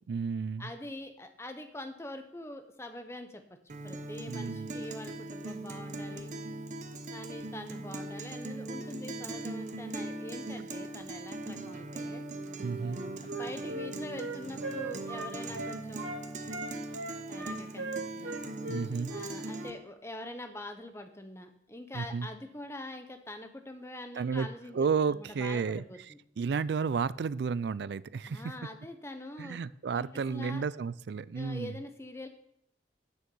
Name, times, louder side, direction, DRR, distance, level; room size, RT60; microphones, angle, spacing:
voice 1, 0.1-0.7 4.3-4.7 12.6-13.0 18.7-19.1 21.9-22.3 24.2-24.5 24.7-25.8 26.4-28.4 29.4-31.8, right 5 dB, 65° right, 19 dB, 0.3 m, -32 dB
voice 2, 0.6-3.4 3.8-6.3 7.1-12.2 13.2-16.2 17.3-18.4 19.1-26.2 28.3-29.6 29.9-30.6 31.3-32.3, left 1 dB, 15° left, 7 dB, 0.9 m, -44 dB
Guitar, 3.7-19.7, right 2 dB, 40° right, 0.8 m, -40 dB
Wind instrument woodwind instrument, 12.8-16.2 16.5-19.8, right 2 dB, 85° right, 2.1 m, -39 dB
9.3 x 6.5 x 7.0 m, 0.75 s
head